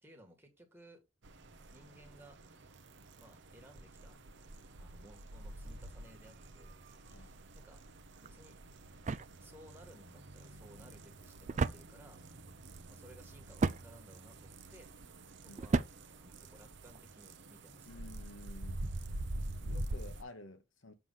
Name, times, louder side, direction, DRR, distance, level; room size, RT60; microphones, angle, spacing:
voice 1, 0.0-1.0 1.7-2.4 3.2-4.2 4.8-6.8 7.1-7.8 8.2-8.6 9.4-12.2 12.9-14.9 15.4-15.8 16.1-17.9, equal, 10° right, 1.6 m, -59 dB
sound 1, 1.2-20.2, right 1 dB, 60° right, 0.8 m, -46 dB
sound 2, 8.2-17.0, right 4 dB, 35° right, 0.4 m, -39 dB
voice 2, 17.9-19.3 19.6-20.9, left 2 dB, 70° left, 1.0 m, -52 dB
6.9 x 3.2 x 5.5 m
head